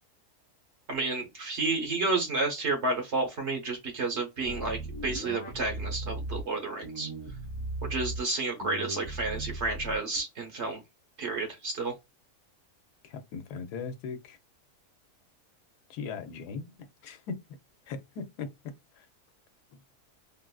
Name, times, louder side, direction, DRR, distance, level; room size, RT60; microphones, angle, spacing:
voice 1, 0.9-7.1 7.9-10.8 11.2-11.9, right 3 dB, 50° right, 1.0 m, -31 dB
sound 1, 4.4-6.4 6.8-8.2 8.6-10.2, right 2 dB, 35° left, 0.7 m, -37 dB
voice 2, 13.0-14.4 15.9-17.4 17.9-18.5 19.0-19.1, left 5 dB, 80° left, 1.2 m, -39 dB
3.5 x 2.4 x 2.2 m
omnidirectional pair, 1.7 m